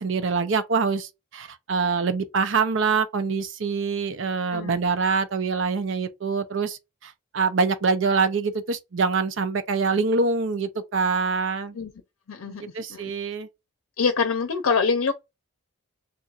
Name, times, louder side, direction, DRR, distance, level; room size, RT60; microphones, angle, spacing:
voice 1, 0.0-11.8 12.5-13.5, right 4 dB, 65° right, 0.6 m, -25 dB
voice 2, 12.3-12.6 12.9-13.1 14.0-15.1, left 5 dB, 90° left, 0.6 m, -24 dB
2.6 x 2.4 x 4.1 m
head